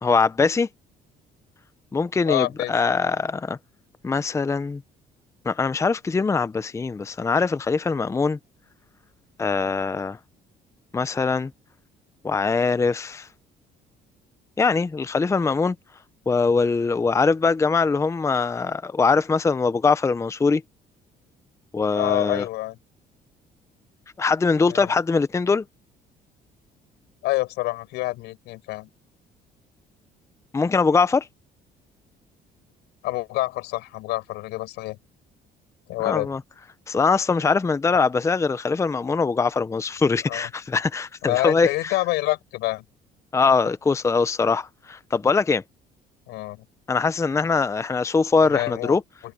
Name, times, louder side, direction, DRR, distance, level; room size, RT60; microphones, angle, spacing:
voice 1, 0.0-0.7 1.9-3.6 4.0-4.8 5.4-8.4 9.4-10.2 10.9-11.5 12.2-13.3 14.6-15.8 16.3-20.6 21.7-22.5 24.2-25.6 30.5-31.3 36.0-36.4 36.9-41.9 43.3-45.6 46.9-49.0, left 4 dB, 15° left, 0.6 m, -22 dB
voice 2, 2.3-2.8 21.9-22.8 24.7-24.9 27.2-28.9 33.0-35.0 35.9-36.3 40.3-40.5 41.2-42.9 46.3-46.7 48.4-49.0, left 19 dB, 90° left, 7.0 m, -27 dB
cardioid pair, 110°, 17 cm